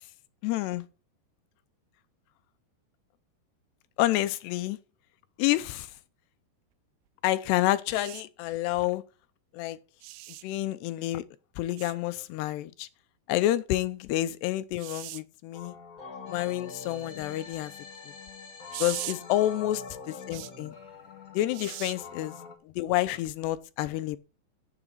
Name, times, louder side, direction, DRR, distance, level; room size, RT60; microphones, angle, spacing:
voice 1, 0.4-0.9 4.0-4.8 5.4-5.9 7.2-9.0 9.5-9.8 10.4-11.2 11.6-12.9 13.3-15.8 16.3-17.7 18.8-20.7 21.3-22.4 22.7-24.2, left 15 dB, 85° left, 2.8 m, -29 dB
sound 1, 7.9-8.2 10.0-10.4 11.8-12.0 14.8-15.2 18.7-19.2 20.3-20.5 21.5-22.0 23.4-23.6, right 17 dB, 90° right, 2.9 m, -39 dB
sound 2, 15.5-22.5, left 5 dB, 45° left, 1.1 m, -44 dB
11.5 x 7.2 x 5.5 m
omnidirectional pair, 4.9 m